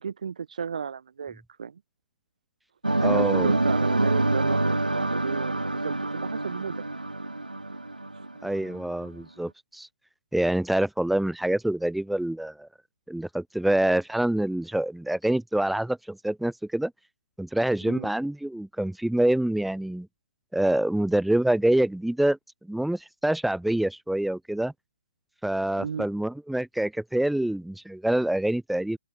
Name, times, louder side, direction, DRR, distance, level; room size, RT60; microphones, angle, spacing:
voice 1, 0.0-1.8 3.0-6.8 7.6-7.9 8.1-8.2 17.8-18.1 25.8-26.1, right 6 dB, 60° right, 7.4 m, -33 dB
sound 1, 2.8-8.8, right 2 dB, 85° right, 5.4 m, -26 dB
voice 2, 3.0-3.5 8.4-9.9 10.3-12.7 13.1-16.9 17.4-20.1 20.5-24.7 25.4-29.0, right 1 dB, ahead, 2.9 m, -26 dB
figure-of-eight pair, 130°, 5 cm